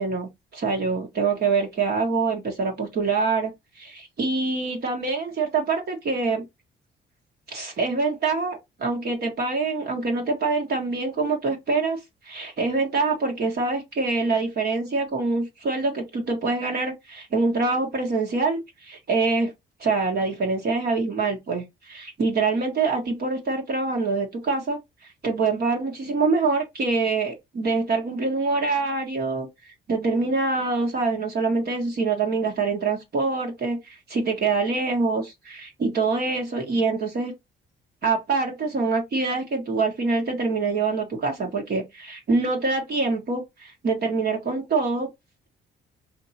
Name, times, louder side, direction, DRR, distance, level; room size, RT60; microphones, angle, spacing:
voice 1, 0.0-6.5 7.5-12.0 12.2-19.5 19.8-24.8 25.2-29.5 29.9-37.3 38.0-45.1, right 4 dB, 50° right, 1.4 m, -25 dB
4.4 x 2.9 x 2.8 m
cardioid pair, 90°, 20 cm